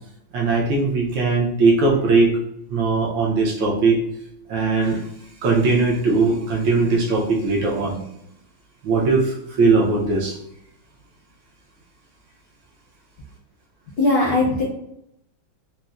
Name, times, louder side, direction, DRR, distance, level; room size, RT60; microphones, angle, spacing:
voice 1, 0.3-2.4 2.7-4.0 4.5-5.0 5.4-8.0 8.8-10.4, right 3 dB, 75° right, -2 dB, 1.4 m, -19 dB
voice 2, 14.0-14.6, left 2 dB, 65° left, -4 dB, 1.0 m, -19 dB
4.0 x 2.0 x 2.4 m, 0.77 s
omnidirectional pair, 2.2 m